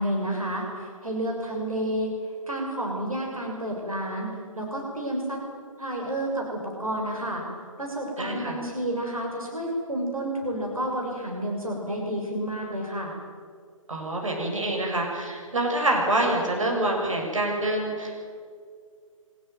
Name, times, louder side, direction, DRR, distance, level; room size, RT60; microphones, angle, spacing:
voice 1, 0.0-2.1 2.5-5.4 5.8-7.4 7.8-13.1, right 1 dB, 85° right, 0 dB, 6.6 m, -30 dB
voice 2, 8.2-8.6 13.9-18.2, right 1 dB, 65° right, 0 dB, 7.3 m, -26 dB
24.5 x 18.5 x 9.5 m, 2.1 s
figure-of-eight pair, 135°, 18 cm